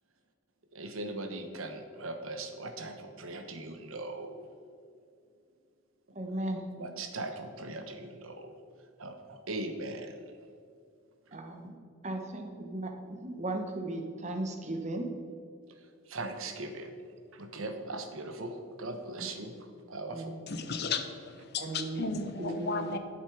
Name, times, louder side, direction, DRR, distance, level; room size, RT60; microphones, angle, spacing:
voice 1, 0.7-4.4 6.8-8.5 9.0-10.2 16.1-16.9 17.3-19.5 19.9-20.3, right 2 dB, 75° right, 6 dB, 1.1 m, -39 dB
voice 2, 6.1-6.7 11.3-11.7 12.0-15.1 19.2-19.3 20.1-20.4 21.6-22.1 22.4-22.9, right 1 dB, 35° right, 3 dB, 1.1 m, -36 dB
voice 3, 20.5-23.0, left 4 dB, 50° left, 8 dB, 0.9 m, -34 dB
12.0 x 7.2 x 4.8 m, 2.3 s
head